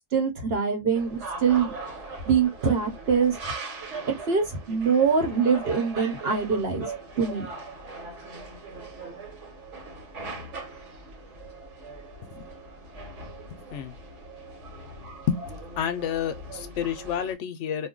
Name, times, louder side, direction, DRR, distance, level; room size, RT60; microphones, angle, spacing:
voice 1, 0.1-1.7 2.3-3.3 4.3-6.9 7.2-7.5, right 6 dB, 55° right, 1.1 m, -23 dB
sound 1, 0.9-17.3, right 3 dB, 70° right, 1.3 m, -40 dB
voice 2, 13.5-13.9 15.3-15.5 15.8-17.9, left 8 dB, 75° left, 0.9 m, -30 dB
2.5 x 2.2 x 3.6 m
omnidirectional pair, 1.3 m